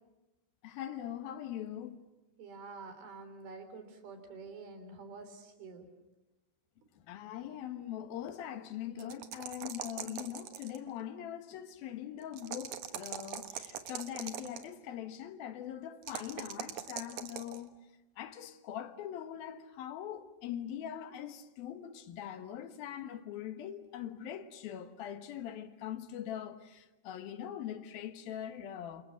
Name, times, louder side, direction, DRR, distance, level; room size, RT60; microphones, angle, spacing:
voice 1, 0.6-2.1 7.0-17.7 18.2-29.0, left 10 dB, 70° left, 3.1 m, -42 dB
voice 2, 2.4-5.9, right 4 dB, 75° right, 5.4 m, -48 dB
sound 1, 9.0-10.9 12.3-14.7 16.0-17.6, right 9 dB, 60° right, 2.5 m, -41 dB
29.0 x 27.5 x 7.5 m
omnidirectional pair, 4.5 m